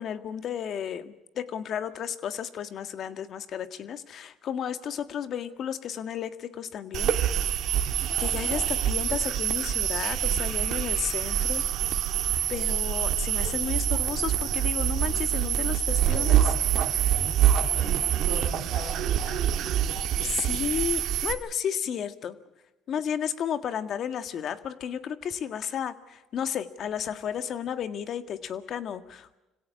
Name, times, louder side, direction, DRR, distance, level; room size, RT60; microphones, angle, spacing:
voice 1, 0.0-7.2 8.2-11.6 12.5-16.6 16.8-17.1 20.2-22.4 22.9-29.3, left 8 dB, 55° left, 11 dB, 1.7 m, -33 dB
sound 1, 6.9-21.3, right 10 dB, 65° right, 1.9 m, -26 dB
voice 2, 17.6-19.7, left 3 dB, 70° left, 6 dB, 7.2 m, -41 dB
26.0 x 17.0 x 8.3 m, 1.0 s
supercardioid pair, 95°, 0 cm